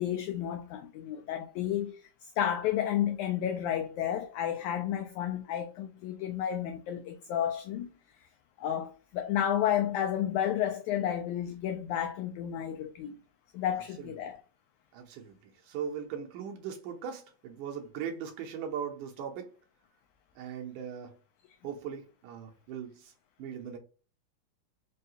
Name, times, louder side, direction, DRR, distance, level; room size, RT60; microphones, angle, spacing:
voice 1, 0.0-7.9 8.2-8.3 8.6-13.2 13.5-14.4, left 10 dB, 85° left, 1.7 m, -31 dB
voice 2, 14.0-14.3 14.9-19.5 20.4-21.1 21.6-23.1 23.4-23.8, right 7 dB, 75° right, 2.2 m, -39 dB
5.5 x 2.2 x 2.7 m
omnidirectional pair, 3.9 m